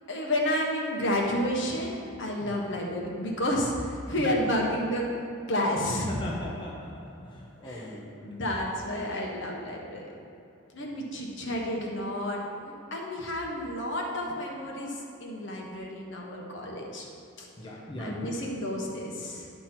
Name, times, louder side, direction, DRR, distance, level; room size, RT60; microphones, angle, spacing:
voice 1, 0.1-5.0 5.5-6.1 7.6-10.0 10.7-17.1 17.4-17.5 18.0-19.5, left 1 dB, 60° left, -1 dB, 1.3 m, -31 dB
voice 2, 6.1-8.4 10.8-11.2 17.6-18.5, left 1 dB, 20° left, -4 dB, 0.9 m, -39 dB
11.0 x 5.8 x 4.5 m, 2.8 s
head